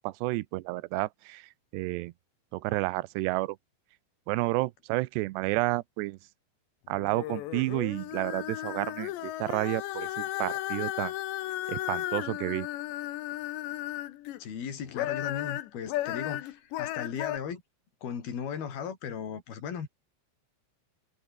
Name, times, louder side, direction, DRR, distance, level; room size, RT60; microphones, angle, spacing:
voice 1, 0.0-2.1 2.5-3.6 4.3-6.2 6.9-11.1 11.7-12.7, right 20 dB, 80° right, 2.7 m, -31 dB
sound 1, 6.9-14.4 14.8-17.4, left 15 dB, 75° left, 3.4 m, -35 dB
voice 2, 14.4-17.6 18.0-19.9, left 7 dB, 55° left, 5.7 m, -37 dB
omnidirectional pair, 5.3 m